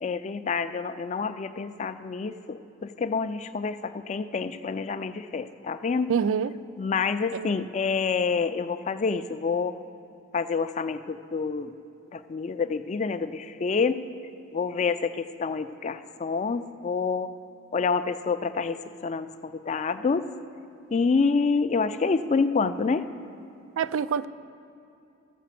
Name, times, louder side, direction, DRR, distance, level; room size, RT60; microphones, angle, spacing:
voice 1, 0.0-6.1 6.8-9.8 10.3-11.7 12.1-14.0 14.5-17.3 17.7-20.3 20.9-23.1, left 5 dB, 35° left, 11 dB, 0.3 m, -27 dB
voice 2, 6.1-6.5 7.3-7.5 23.8-24.3, right 7 dB, 75° right, 15 dB, 0.3 m, -26 dB
13.5 x 5.0 x 7.5 m, 2.7 s
head